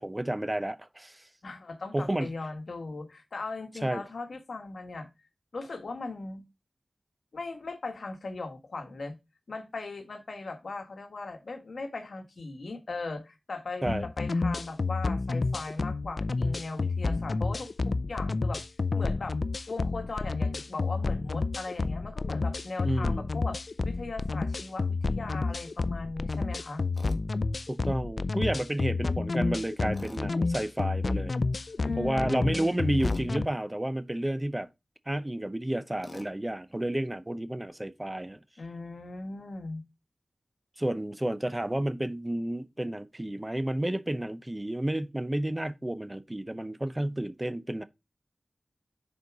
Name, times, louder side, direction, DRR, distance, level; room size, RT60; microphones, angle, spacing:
voice 1, 0.0-1.2 1.9-2.3 3.8-4.0 13.8-14.1 22.8-23.2 27.7-31.4 32.0-34.7 35.1-38.4 40.8-47.9, right 1 dB, 20° right, 0.6 m, -31 dB
voice 2, 1.4-5.1 5.5-6.4 7.3-9.2 9.5-18.6 18.9-19.4 19.7-23.6 23.8-26.8 31.8-33.0 38.6-39.8, left 3 dB, 80° left, 1.3 m, -38 dB
sound 1, 13.9-33.5, left 3 dB, 65° left, 0.4 m, -30 dB
Tools, 26.9-27.2 29.9-30.3 33.0-33.3 36.0-36.3, left 1 dB, 40° left, 1.6 m, -44 dB
6.7 x 4.4 x 4.7 m
wide cardioid pair, 55°, 0 cm